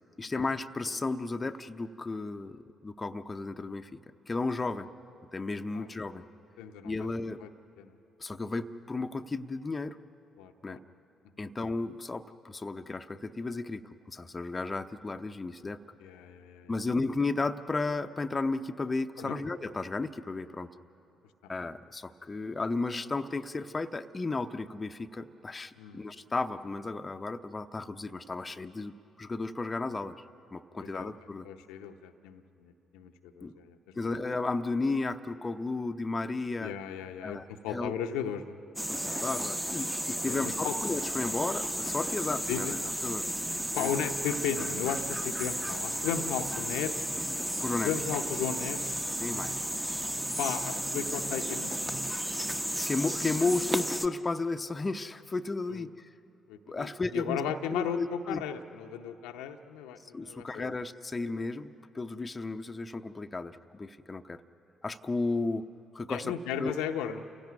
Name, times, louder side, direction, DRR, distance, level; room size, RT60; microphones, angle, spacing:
voice 1, 0.2-3.9 4.3-4.9 5.3-6.2 6.8-7.4 8.2-10.0 10.6-10.8 11.4-13.8 14.1-15.8 16.7-20.7 21.5-30.2 30.5-31.5 33.4-33.5 34.0-36.7 37.2-37.9 38.9-42.8 43.0-43.3 43.7-44.0 47.6-47.9 49.2-49.6 52.9-56.1 56.7-57.4 57.7-58.4 60.1-64.4 64.8-65.6 65.9-66.7, left 3 dB, 25° left, 7 dB, 0.8 m, -34 dB
voice 2, 6.6-7.1 7.4-7.5 7.8-8.0 10.4-10.8 11.4-11.5 16.0-16.7 19.2-19.4 25.8-26.0 30.9-31.1 31.4-34.0 36.6-38.5 40.2-40.7 42.5-42.7 43.8-47.0 47.8-48.8 50.4-52.0 55.7-55.9 56.5-60.7 66.1-67.2, left 8 dB, 70° left, 6 dB, 0.8 m, -35 dB
sound 1, 38.8-54.1, right 1 dB, 10° right, 1.0 m, -33 dB
29.0 x 16.5 x 9.4 m, 3.0 s
figure-of-eight pair, 45°, 0 cm